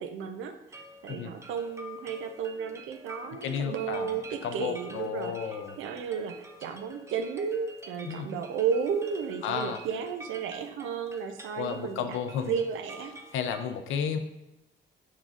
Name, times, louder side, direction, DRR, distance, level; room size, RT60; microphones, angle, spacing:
voice 1, 0.0-12.2 12.4-13.2, right 6 dB, 85° right, 8 dB, 0.5 m, -33 dB
sound 1, 0.7-13.6, right 1 dB, 15° right, 0.4 m, -48 dB
voice 2, 3.4-4.1 4.4-5.8 8.0-8.3 9.4-9.8 11.6-12.5 13.3-14.2, left 7 dB, 80° left, 7 dB, 0.5 m, -32 dB
5.2 x 3.7 x 2.4 m, 0.94 s
cardioid pair, 90°, 20 cm